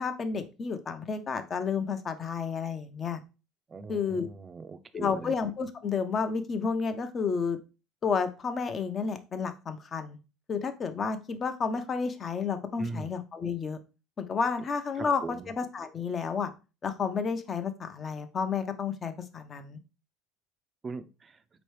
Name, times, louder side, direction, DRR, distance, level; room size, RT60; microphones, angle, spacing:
voice 1, 0.0-3.2 3.9-4.3 4.9-7.6 8.0-10.2 10.5-13.8 14.2-16.5 16.8-19.8, left 5 dB, 35° left, 8 dB, 0.7 m, -31 dB
voice 2, 3.7-5.4 12.8-13.1 15.0-15.5 20.8-21.4, right 4 dB, 30° right, 11 dB, 0.5 m, -40 dB
4.4 x 3.0 x 3.2 m, 0.31 s
hypercardioid pair, 80°, 0 cm